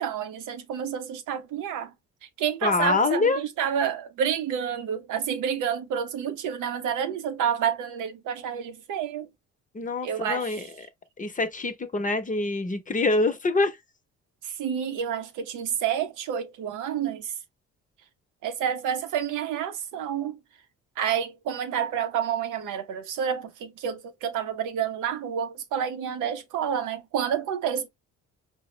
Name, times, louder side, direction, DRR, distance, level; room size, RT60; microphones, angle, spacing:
voice 1, 0.0-1.9 2.4-9.3 10.0-10.5 14.4-17.3 18.4-20.4 21.0-27.9, right 8 dB, 90° right, 0.7 m, -29 dB
voice 2, 2.6-3.4 9.7-10.9 11.2-13.8, left 3 dB, 25° left, 0.8 m, -25 dB
4.5 x 2.0 x 3.1 m
cardioid pair, 90°, 30 cm